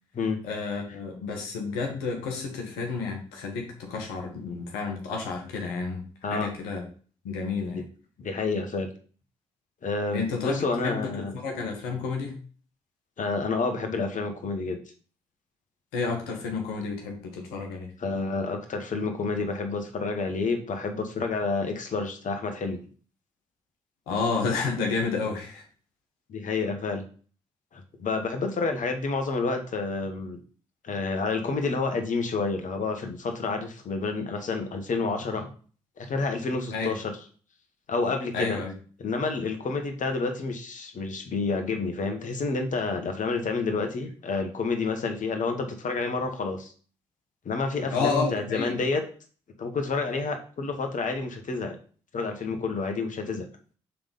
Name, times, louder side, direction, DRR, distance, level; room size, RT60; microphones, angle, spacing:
voice 1, 0.4-6.8 7.2-7.8 10.1-12.3 15.9-17.9 24.1-25.6 36.7-37.0 38.3-38.7 47.9-48.7, left 4 dB, 80° left, 2 dB, 1.5 m, -30 dB
voice 2, 8.2-8.9 9.8-11.3 13.2-14.8 18.0-22.8 26.3-27.0 27.7-30.4 30.8-35.5 36.0-37.1 37.9-38.6 39.0-46.7 47.4-49.0 49.6-51.8 52.1-53.4, left 4 dB, 55° left, 5 dB, 1.7 m, -29 dB
5.8 x 3.8 x 5.4 m, 0.40 s
hypercardioid pair, 40°, 16 cm